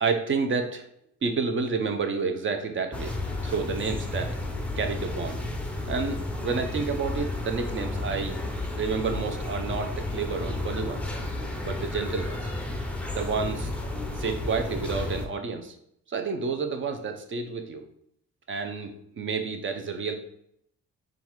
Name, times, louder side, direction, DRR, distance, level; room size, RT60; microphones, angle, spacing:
voice 1, 0.0-0.8 1.2-3.1 3.4-4.4 4.8-5.4 5.9-8.4 8.8-11.1 11.6-12.5 13.1-13.7 14.2-15.7 16.1-17.8 18.5-20.1, right 4 dB, 40° right, 5 dB, 0.7 m, -30 dB
sound 1, 2.9-15.3, left 2 dB, 5° left, 0.6 m, -32 dB
3.9 x 2.4 x 4.5 m, 0.73 s
cardioid pair, 90°, 30 cm